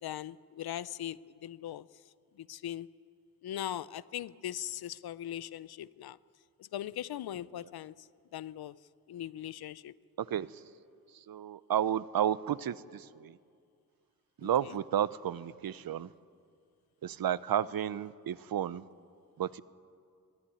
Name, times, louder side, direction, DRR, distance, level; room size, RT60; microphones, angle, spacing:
voice 1, 0.0-1.9 2.4-2.9 3.4-6.2 6.6-8.8 9.1-9.9 14.4-14.8, left 11 dB, 90° left, 19 dB, 0.6 m, -40 dB
voice 2, 10.2-10.5 11.3-13.4 14.4-16.1 17.0-18.8 19.4-19.6, right 10 dB, 70° right, 18 dB, 0.7 m, -32 dB
23.5 x 13.5 x 9.9 m, 2.3 s
cardioid pair, 80°, 36 cm